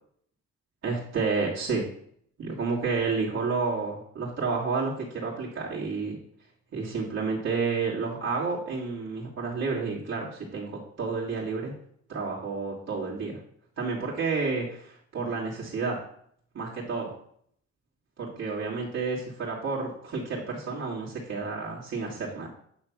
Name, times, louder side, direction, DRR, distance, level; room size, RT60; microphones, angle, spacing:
voice 1, 0.8-1.8 2.4-6.2 6.7-10.7 11.0-11.7 12.1-13.4 13.8-16.0 16.5-17.1 18.2-22.5, right 4 dB, 60° right, -6 dB, 2.6 m, -30 dB
9.4 x 3.4 x 6.0 m, 0.64 s
cardioid pair, 90°, 30 cm